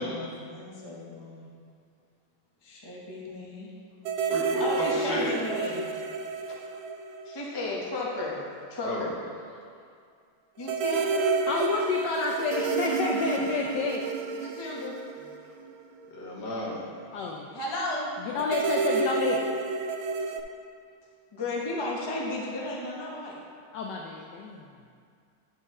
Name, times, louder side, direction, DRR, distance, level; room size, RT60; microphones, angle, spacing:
voice 1, 0.0-1.4 2.6-3.7 4.2-5.9 6.5-6.6 7.2-8.4 8.7-9.2 10.6-11.2 14.4-15.3 17.5-18.1 21.3-23.4, left 2 dB, 30° left, -4 dB, 0.4 m, -34 dB
sound 1, 4.0-7.8 8.1-8.2 10.6-16.1 18.4-20.4, right 4 dB, 75° right, 1.2 m, -30 dB
voice 2, 4.3-5.3 8.8-9.1 16.1-16.9, left 1 dB, 60° left, -3 dB, 1.7 m, -33 dB
voice 3, 11.5-14.0 17.1-17.5 18.2-19.4 23.7-24.7, left 4 dB, 75° left, 0 dB, 1.0 m, -29 dB
11.0 x 4.7 x 3.6 m, 2.2 s
omnidirectional pair, 2.3 m